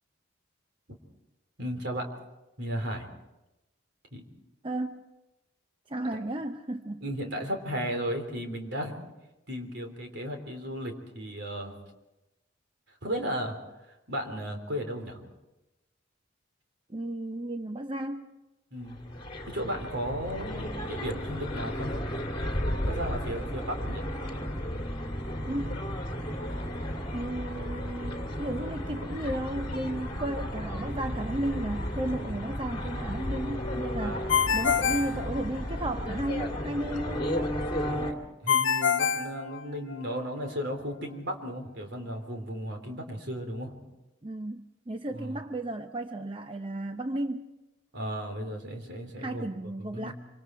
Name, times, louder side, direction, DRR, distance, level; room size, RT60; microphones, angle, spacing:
voice 1, 1.6-2.1 2.6-3.1 4.1-4.2 7.0-9.0 9.5-11.7 13.0-13.6 14.1-15.2 18.7-19.0 19.5-22.1 22.9-24.1 34.0-34.5 37.8-38.1 38.4-43.8 45.1-45.4 47.9-49.5 49.8-50.1, equal, 60° right, 4 dB, 3.7 m, -35 dB
voice 2, 4.6-5.1 5.9-7.0 16.9-18.3 25.5-25.8 27.1-34.3 34.5-37.4 44.2-47.5 49.2-50.1, right 1 dB, 25° right, 6 dB, 0.7 m, -34 dB
sound 1, 18.8-38.1, equal, 25° left, 2.6 m, -34 dB
Ringtone, 34.3-35.9 38.5-40.1, left 7 dB, 65° left, 1.1 m, -26 dB
26.0 x 25.5 x 4.6 m, 0.98 s
head